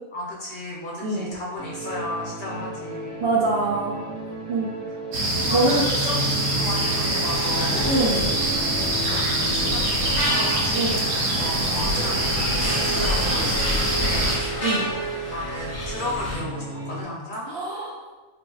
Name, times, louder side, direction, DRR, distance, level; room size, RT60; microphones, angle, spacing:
voice 1, 0.1-3.3 4.5-4.6 5.5-6.3 6.5-7.9 8.8-11.0 11.4-14.4 15.3-17.5, left 1 dB, 55° left, -4 dB, 0.6 m, -34 dB
voice 2, 1.0-1.3 3.2-4.0 4.5-4.7 5.5-5.8 7.9-8.3 10.7-11.0 14.6-14.9 17.5-18.0, right 2 dB, 60° right, -4 dB, 0.7 m, -24 dB
sound 1, 1.6-17.0, right 1 dB, 30° right, 1.2 m, -33 dB
sound 2, 5.1-14.4, right 1 dB, 75° right, 1.0 m, -24 dB
sound 3, 6.7-16.4, left 1 dB, 15° left, 0.7 m, -31 dB
4.1 x 2.6 x 2.3 m, 1.2 s
omnidirectional pair, 1.5 m